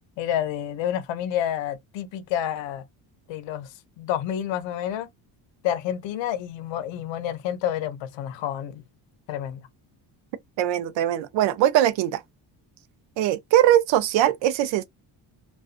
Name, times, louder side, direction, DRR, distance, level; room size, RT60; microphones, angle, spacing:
voice 1, 0.2-2.8 3.3-3.7 4.0-5.1 5.6-8.8 9.3-9.7, left 10 dB, 80° left, 0.7 m, -29 dB
voice 2, 10.6-12.2 13.2-14.8, right 12 dB, 80° right, 0.5 m, -21 dB
2.4 x 2.3 x 2.4 m
cardioid pair, 115°, 44 cm